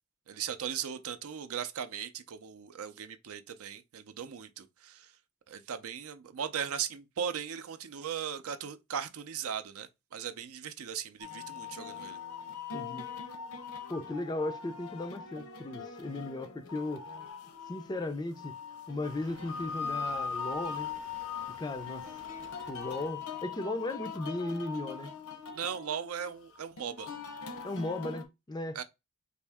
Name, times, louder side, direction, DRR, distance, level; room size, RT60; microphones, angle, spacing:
voice 1, 0.3-5.1 5.5-12.2 25.5-27.1 28.7-28.8, right 8 dB, 70° right, 0.5 m, -38 dB
sound 1, 11.2-28.2, left 5 dB, 75° left, 0.7 m, -41 dB
voice 2, 12.7-13.1 13.9-17.1 17.7-18.5 18.9-20.9 21.5-22.1 22.7-25.1 27.6-28.8, left 2 dB, 20° left, 0.3 m, -36 dB
sound 2, 18.0-23.1, right 4 dB, 90° right, 0.8 m, -56 dB
4.1 x 2.7 x 3.4 m
head